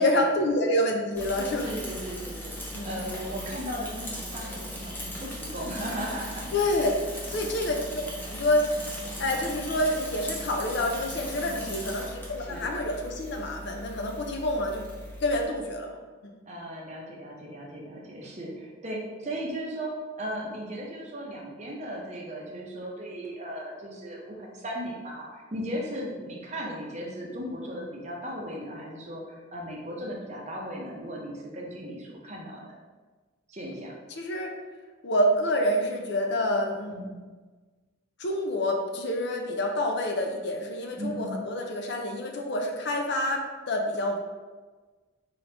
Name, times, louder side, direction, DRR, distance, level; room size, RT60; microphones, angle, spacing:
voice 1, 0.0-1.8 2.7-3.1 6.5-7.0 7.3-8.7 9.2-14.9 15.2-15.9 16.2-16.4 34.2-34.5 35.0-37.0 38.2-44.2, left 1 dB, 55° left, 2 dB, 0.5 m, -27 dB
Bicycle / Mechanisms, 1.1-15.4, equal, 10° left, 0.5 m, -38 dB
voice 2, 1.5-2.5 2.8-6.5 7.3-7.5 11.4-11.8 12.5-12.7 16.5-32.8 33.5-33.9 36.9-37.2 41.0-41.4, equal, 35° right, -2 dB, 0.7 m, -37 dB
3.8 x 2.9 x 3.3 m, 1.3 s
head